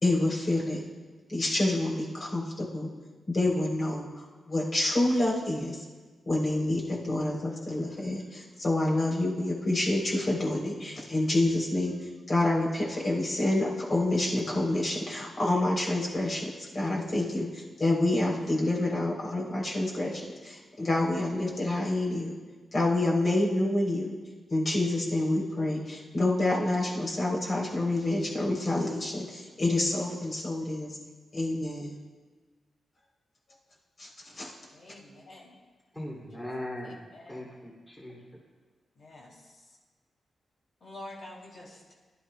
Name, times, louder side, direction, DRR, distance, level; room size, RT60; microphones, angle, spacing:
voice 1, 0.0-0.8 1.3-2.9 3.3-5.8 6.3-11.9 12.3-22.3 22.7-24.2 24.5-31.0 31.3-31.9 34.0-34.1 34.4-34.5, left 2 dB, 35° left, -3 dB, 3.4 m, -28 dB
voice 2, 34.7-35.5 36.8-37.4 39.0-39.5 40.8-41.9, left 1 dB, 60° left, -3 dB, 2.8 m, -47 dB
voice 3, 35.9-37.0 37.3-38.2, left 1 dB, 10° left, -4 dB, 2.7 m, -39 dB
21.0 x 12.0 x 2.3 m, 1.4 s
wide cardioid pair, 130°, 0 cm